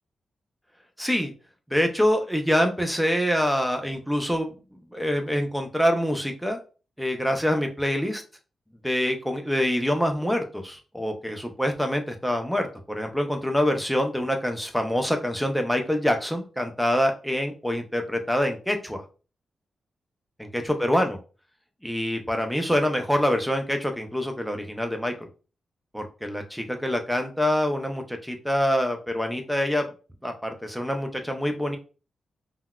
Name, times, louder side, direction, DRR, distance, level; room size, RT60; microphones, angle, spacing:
voice 1, 1.0-1.3 1.7-4.5 4.9-6.6 7.0-8.2 8.8-19.0 20.4-21.2 21.8-25.3 25.9-29.9 30.2-31.8, equal, ahead, 4 dB, 0.5 m, -25 dB
3.7 x 2.2 x 2.2 m, 0.34 s
wide cardioid pair, 150°, 0 cm